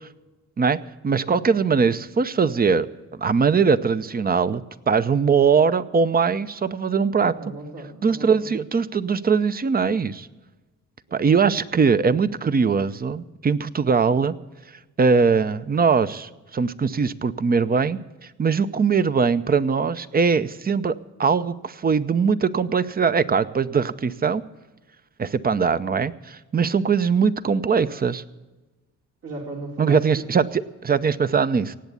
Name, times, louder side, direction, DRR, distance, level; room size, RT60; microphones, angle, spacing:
voice 1, 0.6-2.9 3.2-7.3 8.0-10.3 11.1-14.3 15.0-18.0 18.4-24.4 25.2-28.2 29.8-31.8, right 5 dB, 30° right, 14 dB, 0.7 m, -21 dB
voice 2, 7.3-8.5 11.1-11.2 29.2-30.3, right 2 dB, 50° right, -1 dB, 2.5 m, -36 dB
18.0 x 8.2 x 8.3 m, 1.2 s
cardioid pair, 90°, 30 cm